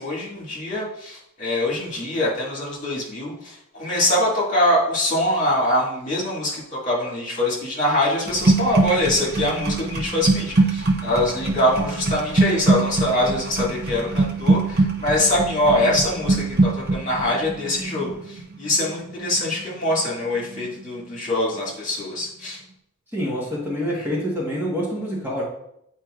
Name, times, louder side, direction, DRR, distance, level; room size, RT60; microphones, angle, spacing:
voice 1, 0.0-22.6 23.9-24.0, left 1 dB, 35° left, -5 dB, 2.0 m, -23 dB
sound 1, 8.3-20.1 20.4-20.8, right 2 dB, 45° right, 0.7 m, -23 dB
voice 2, 23.1-25.4, equal, 10° right, -7 dB, 1.3 m, -26 dB
8.7 x 4.5 x 2.5 m, 0.77 s
head